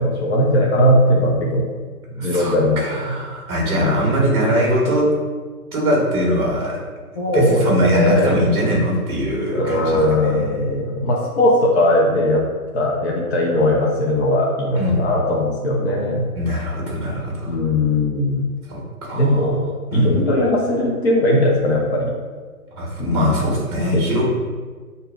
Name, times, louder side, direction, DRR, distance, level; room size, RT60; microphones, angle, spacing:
voice 1, 0.0-1.6 2.1-3.0 3.7-4.0 7.2-8.3 9.5-12.4 12.7-16.2 17.5-18.4 19.1-19.6 19.9-22.1 23.0-23.5 23.9-24.2, left 1 dB, 45° left, -3 dB, 0.7 m, -19 dB
voice 2, 2.2-5.1 5.7-6.8 7.3-10.5 14.7-15.0 16.3-17.5 18.7-19.4 19.9-20.1 22.8-24.2, equal, 15° right, -4 dB, 1.0 m, -21 dB
6.3 x 2.7 x 2.3 m, 1.5 s
hypercardioid pair, 155°, 45 cm